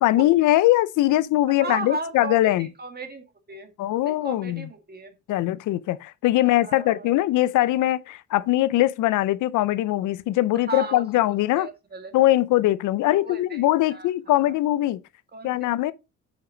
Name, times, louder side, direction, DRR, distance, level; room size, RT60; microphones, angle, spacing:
voice 1, 0.0-2.7 3.8-4.7 5.3-11.7 12.1-15.0 15.4-15.9, left 15 dB, 80° left, 0.6 m, -21 dB
voice 2, 1.5-3.7 4.0-5.1 6.4-7.1 10.7-12.1 13.1-13.6 13.9-14.6 15.3-15.7, right 4 dB, 30° right, 2.1 m, -36 dB
8.2 x 5.9 x 3.8 m
cardioid pair, 90°, 30 cm